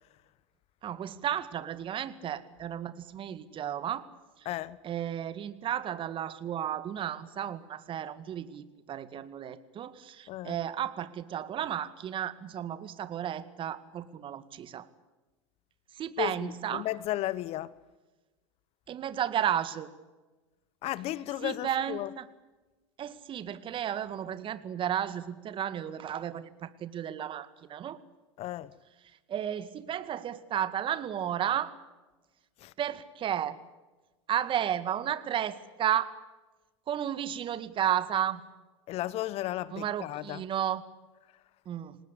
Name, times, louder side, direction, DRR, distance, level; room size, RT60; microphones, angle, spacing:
voice 1, 0.8-4.0 4.8-14.9 15.9-16.9 18.9-19.9 21.4-22.3 23.0-28.0 29.3-31.7 32.8-33.6 34.3-36.1 36.9-38.4 39.7-40.9 41.7-42.0, right 10 dB, 35° right, 2.0 m, -33 dB
voice 2, 4.4-4.8 10.3-10.6 16.2-17.8 20.8-22.1 28.4-28.7 32.6-32.7 38.9-40.4, left 15 dB, 45° left, 1.1 m, -34 dB
28.0 x 19.5 x 8.3 m
hypercardioid pair, 90°, 15 cm